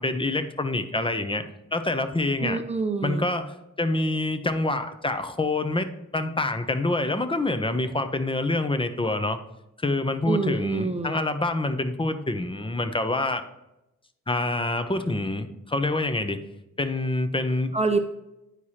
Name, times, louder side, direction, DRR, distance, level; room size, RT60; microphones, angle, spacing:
voice 1, 0.0-1.4 1.7-2.6 3.0-9.4 9.8-13.4 14.3-16.4 16.8-17.7, left 2 dB, 15° left, 9 dB, 0.7 m, -26 dB
voice 2, 2.4-3.2 10.3-11.2 17.7-18.1, right 4 dB, 20° right, 6 dB, 0.5 m, -26 dB
9.7 x 4.6 x 2.9 m, 0.90 s
cardioid pair, 65°, 30 cm